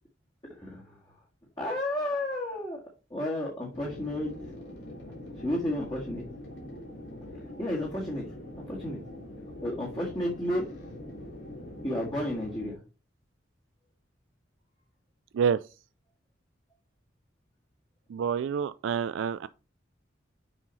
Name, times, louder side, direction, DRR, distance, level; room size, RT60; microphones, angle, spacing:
voice 1, 0.5-0.8 1.6-2.8 3.1-4.3 5.4-6.2 7.6-8.3 8.7-9.0 9.6-10.7 11.8-12.7, left 1 dB, 25° left, 1.9 m, -31 dB
sound 1, 3.7-12.7, left 1 dB, 75° left, 3.1 m, -43 dB
voice 2, 18.1-19.5, right 7 dB, 85° right, 0.3 m, -27 dB
7.1 x 5.6 x 4.1 m
head